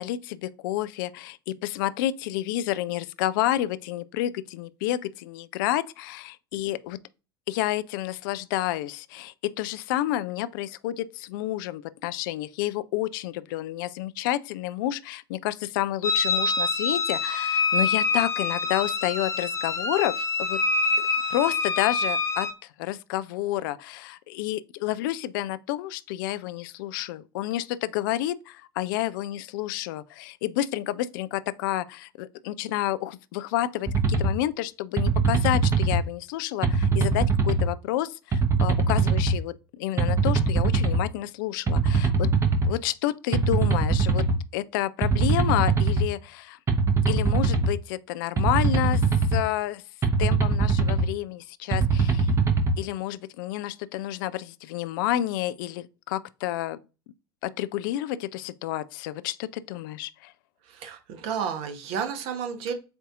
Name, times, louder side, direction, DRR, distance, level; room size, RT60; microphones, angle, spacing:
voice 1, 0.0-7.0 7.5-20.6 21.0-22.5 22.8-42.3 42.6-44.2 44.5-46.6 47.1-49.1 49.3-49.8 50.2-52.3 52.8-56.8 57.4-60.3, left 14 dB, 55° left, 0.4 m, -30 dB
sound 1, 16.0-22.5, left 3 dB, 20° left, 0.8 m, -26 dB
sound 2, 33.9-34.3 35.0-36.0 36.6-37.7 38.3-39.3 40.0-41.0 41.7-42.7 43.3-44.4 45.0-46.0 46.7-47.7 48.4-49.4 50.0-51.1 51.7-52.7, right 4 dB, 20° right, 0.9 m, -22 dB
voice 2, 60.6-62.7, right 7 dB, 50° right, 1.0 m, -31 dB
7.8 x 2.6 x 2.4 m
figure-of-eight pair, 70°, 13 cm